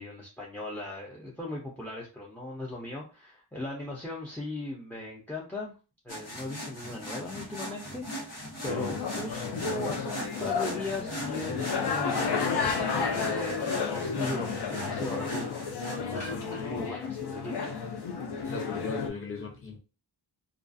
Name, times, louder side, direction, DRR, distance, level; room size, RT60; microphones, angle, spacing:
voice 1, 0.0-5.7 6.0-15.6 16.1-17.8, left 1 dB, 5° left, 0.3 m, -38 dB
sound 1, 6.1-16.6 17.1-17.2, equal, 85° left, 1.3 m, -40 dB
sound 2, 8.7-19.1, left 6 dB, 70° left, 0.5 m, -32 dB
voice 2, 18.4-19.8, left 3 dB, 30° left, 0.7 m, -37 dB
2.4 x 2.3 x 2.4 m
wide cardioid pair, 175°, 42 cm